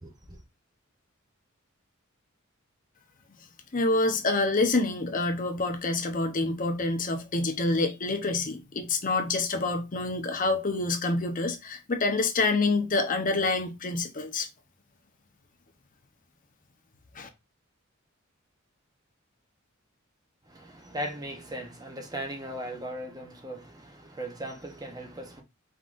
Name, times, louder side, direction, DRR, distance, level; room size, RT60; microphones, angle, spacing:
voice 1, 0.0-0.4 20.5-25.4, right 1 dB, 20° right, 0.8 m, -38 dB
voice 2, 3.7-14.5 17.1-17.3, left 3 dB, 40° left, 0.7 m, -27 dB
4.8 x 3.8 x 2.5 m
head